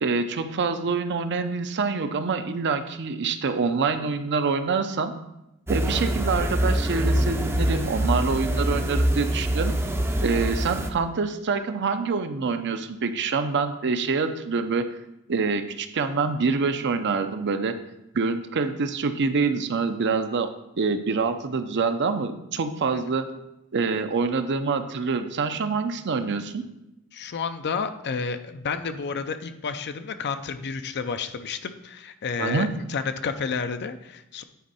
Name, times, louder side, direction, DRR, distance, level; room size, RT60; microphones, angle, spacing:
voice 1, 0.0-5.1 5.7-9.7 10.2-14.9 15.3-17.7 18.1-20.5 20.8-23.3 23.7-26.6 32.4-32.7, right 4 dB, 55° right, 9 dB, 0.6 m, -26 dB
sound 1, 5.7-10.9, right 1 dB, 10° right, 0.6 m, -24 dB
voice 2, 27.1-34.4, left 5 dB, 50° left, 10 dB, 0.5 m, -31 dB
9.3 x 4.5 x 4.1 m, 0.89 s
head